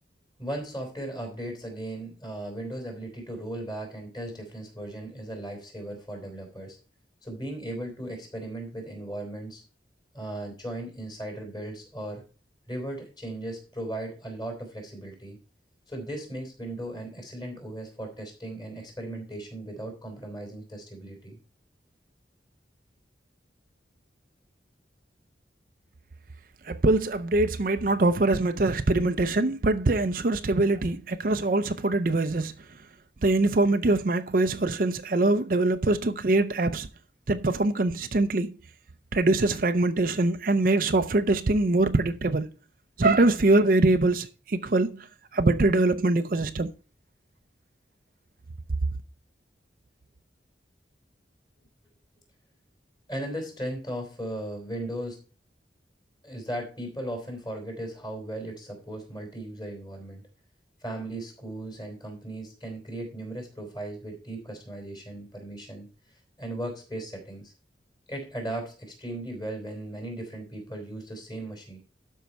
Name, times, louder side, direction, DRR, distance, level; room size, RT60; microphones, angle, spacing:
voice 1, 0.4-6.8 7.2-9.6 10.1-12.2 12.7-15.4 15.9-21.4 53.1-55.2 56.2-60.2 60.8-65.9 66.4-67.5 68.1-71.8, right 1 dB, 25° left, 3.7 m, -37 dB
voice 2, 26.6-32.5 33.2-36.9 37.3-38.5 39.1-42.5 43.0-45.1 45.3-46.7, right 2 dB, 50° right, 0.5 m, -23 dB
12.5 x 5.5 x 4.5 m
head